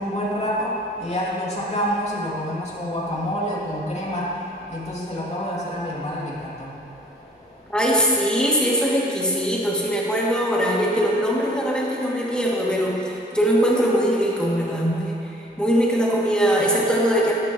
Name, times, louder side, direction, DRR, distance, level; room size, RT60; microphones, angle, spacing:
voice 1, 0.0-7.7, equal, 35° left, -6 dB, 2.7 m, -28 dB
voice 2, 7.7-17.3, equal, 5° left, -6 dB, 2.5 m, -21 dB
12.0 x 12.0 x 3.1 m, 2.8 s
wide cardioid pair, 55°, 18 cm